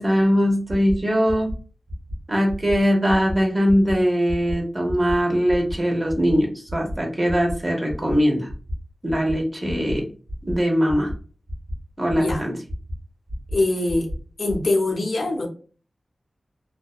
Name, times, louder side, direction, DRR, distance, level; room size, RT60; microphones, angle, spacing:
voice 1, 0.0-1.5 2.3-8.5 9.0-10.0 10.4-11.1 12.0-12.5, equal, 30° right, 0.8 m, -21 dB
sound 1, 0.7-1.0 1.3-1.6 1.9-2.2 2.5-2.8 3.1-3.4 3.7-3.9 4.3-4.6 4.9-5.1 5.5-5.8 6.1-6.4 6.7-7.0 7.3-7.6 7.9-8.2 8.5-8.8 9.1-9.4 9.7-10.0 10.3-10.6 10.9-11.1 11.5-11.8 12.1-12.4 12.7-13.0 13.3-13.6 13.9-14.2 14.5-14.6, left 1 dB, 50° right, 1.2 m, -30 dB
voice 2, 12.1-12.4 13.5-14.1 14.4-15.5, left 2 dB, 75° left, 0.5 m, -23 dB
2.5 x 2.1 x 2.3 m
wide cardioid pair, 60°, 0 cm